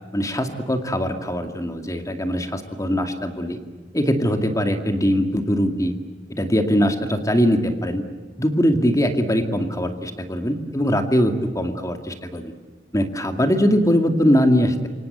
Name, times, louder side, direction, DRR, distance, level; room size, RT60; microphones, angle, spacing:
voice 1, 0.1-3.6 3.9-5.9 6.3-8.0 8.4-12.5 12.9-14.9, equal, 20° left, 6 dB, 2.2 m, -21 dB
28.0 x 25.5 x 8.0 m, 1.4 s
head